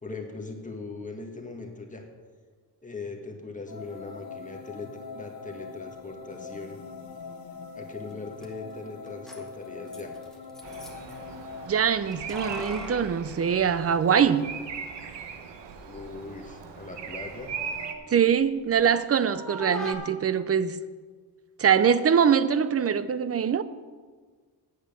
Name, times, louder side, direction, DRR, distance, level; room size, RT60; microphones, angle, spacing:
voice 1, 0.0-2.1 2.8-6.8 7.8-10.1 15.8-17.5, left 3 dB, 20° left, 1.7 m, -40 dB
sound 1, 3.7-11.7, left 5 dB, 60° left, 1.2 m, -42 dB
Keys jangling, 8.1-8.2 8.4-8.5 9.1-11.2 12.1-14.3 14.6-14.7 15.5-16.1 16.5-18.9 19.2-20.0, equal, ahead, 1.5 m, -41 dB
Bird vocalization bird call bird song, 10.6-17.9, right 6 dB, 85° right, 1.1 m, -39 dB
voice 2, 11.7-14.5 18.1-20.8 21.6-23.6, right 7 dB, 35° right, 0.6 m, -23 dB
9.1 x 8.2 x 6.7 m
cardioid pair, 105°, 41 cm